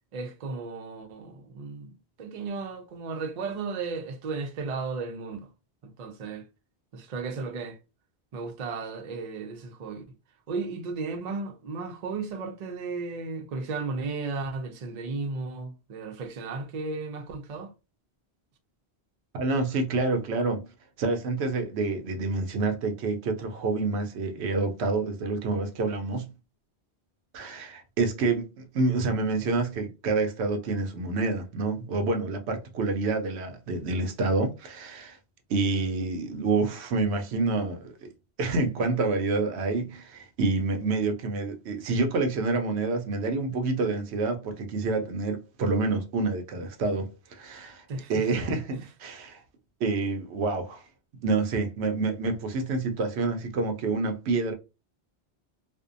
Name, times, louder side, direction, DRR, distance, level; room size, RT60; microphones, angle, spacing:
voice 1, 0.1-5.5 5.8-6.5 6.9-7.8 8.3-10.0 10.5-17.7 47.9-48.3 48.7-48.8, right 4 dB, 50° right, 0.5 m, -34 dB
voice 2, 19.4-20.7 21.0-26.3 27.3-35.2 35.5-38.1 38.4-47.8 48.1-49.4 49.8-50.8 51.2-54.5, right 3 dB, 85° right, 0.9 m, -28 dB
2.6 x 2.1 x 2.4 m
omnidirectional pair, 1.1 m